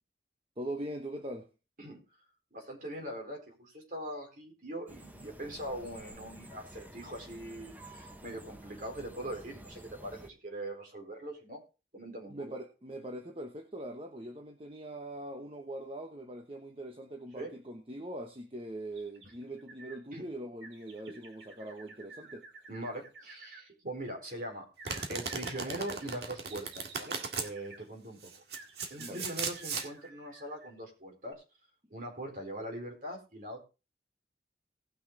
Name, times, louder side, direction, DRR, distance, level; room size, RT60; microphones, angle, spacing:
voice 1, 0.6-1.5 12.3-22.5 29.0-29.3, right 1 dB, 30° right, 1.1 m, -42 dB
voice 2, 2.5-11.6 11.9-12.6 17.4-17.5 20.1-20.2 21.1-21.2 22.7-24.7 25.1-28.3 28.9-31.4 31.9-33.6, right 1 dB, 50° right, 4.2 m, -42 dB
sound 1, 4.9-10.3, right 1 dB, 10° right, 0.9 m, -51 dB
sound 2, 18.9-20.0 20.6-23.6 24.8-27.9 28.5-30.8 31.3-31.4, right 3 dB, 90° right, 2.5 m, -53 dB
Domestic sounds home sounds, 24.8-27.5 28.2-29.9, right 5 dB, 70° right, 1.8 m, -37 dB
18.5 x 6.3 x 3.8 m
head